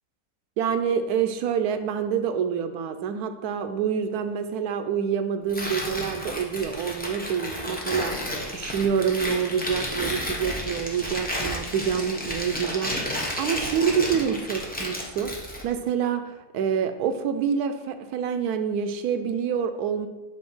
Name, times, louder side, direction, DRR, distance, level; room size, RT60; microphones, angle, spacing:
voice 1, 0.6-15.3 15.6-20.1, right 7 dB, 70° right, 8 dB, 1.1 m, -27 dB
Tearing, 5.5-15.7, left 1 dB, 10° left, 0.4 m, -32 dB
7.8 x 2.7 x 5.4 m, 1.1 s
omnidirectional pair, 1.8 m